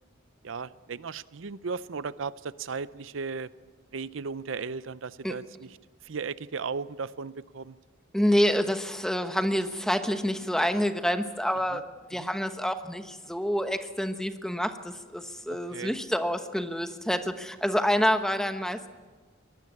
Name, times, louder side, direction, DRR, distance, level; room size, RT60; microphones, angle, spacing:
voice 1, 0.4-3.5 3.9-5.8 6.0-7.8 11.7-11.8 12.2-12.3 15.5-16.0, right 5 dB, 80° right, 16 dB, 0.6 m, -36 dB
voice 2, 8.1-11.8 12.1-18.9, equal, 5° left, 7 dB, 1.1 m, -27 dB
23.0 x 19.5 x 8.5 m, 1.4 s
head